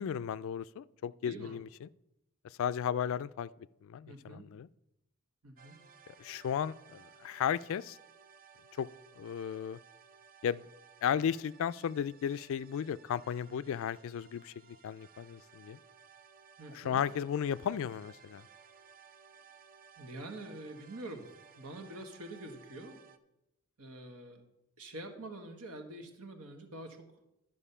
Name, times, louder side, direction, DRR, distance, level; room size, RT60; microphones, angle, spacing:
voice 1, 0.0-1.9 2.6-3.5 3.8-4.7 6.2-8.0 8.8-8.9 9.2-9.8 10.4-10.6 11.0-14.5 14.8-15.8 16.7-18.4, left 8 dB, 65° left, 19 dB, 0.3 m, -34 dB
voice 2, 1.2-1.6 4.0-4.5 5.4-5.8 16.6-17.0 20.0-21.3 21.5-23.0 23.8-24.4 24.8-27.0, right 1 dB, 85° right, 5 dB, 1.5 m, -46 dB
sound 1, 5.6-23.2, right 7 dB, 40° right, 0.5 m, -59 dB
12.0 x 5.3 x 5.5 m, 0.88 s
head